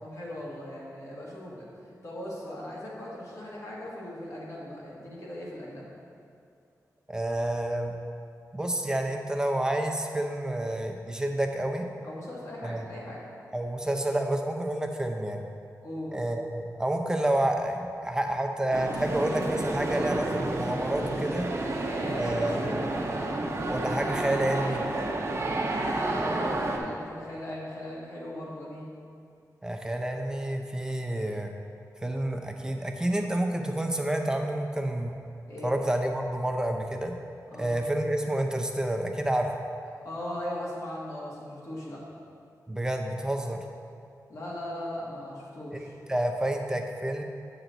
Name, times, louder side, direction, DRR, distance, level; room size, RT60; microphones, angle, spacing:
voice 1, 0.0-1.7 2.0-5.8 12.0-13.2 15.8-16.1 22.0-22.8 26.1-28.9 35.5-35.8 37.5-37.7 40.0-42.0 44.3-45.9, left 1 dB, 55° left, -5 dB, 1.8 m, -38 dB
voice 2, 7.1-7.9 8.5-11.9 12.6-12.9 13.5-15.4 16.1-21.5 22.2-22.6 23.7-24.8 29.6-31.5 32.0-35.1 35.6-37.1 37.6-39.5 42.7-43.6 45.7-47.2, right 1 dB, 10° right, 3 dB, 0.6 m, -29 dB
sound 1, 18.7-26.8, right 2 dB, 45° right, 0.8 m, -30 dB
7.8 x 6.0 x 4.0 m, 2.5 s
wide cardioid pair, 135°, 7 cm